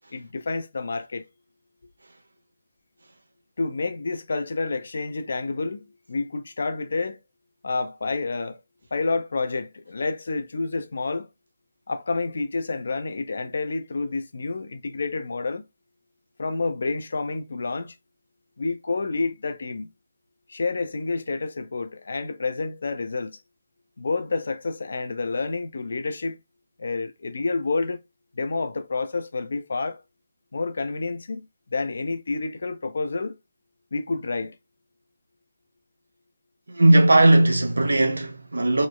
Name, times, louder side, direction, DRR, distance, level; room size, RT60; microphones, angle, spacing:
voice 1, 0.1-1.3 3.6-7.2 7.6-8.6 8.9-11.3 11.9-15.6 16.4-18.0 18.6-19.9 20.5-23.4 24.0-26.4 26.8-28.0 28.3-30.0 30.5-33.3 33.9-34.6, left 3 dB, 60° left, 0.4 m, -29 dB
voice 2, 36.7-38.9, right 2 dB, 75° right, 0.7 m, -17 dB
3.0 x 2.0 x 2.2 m
figure-of-eight pair, 150°, 0 cm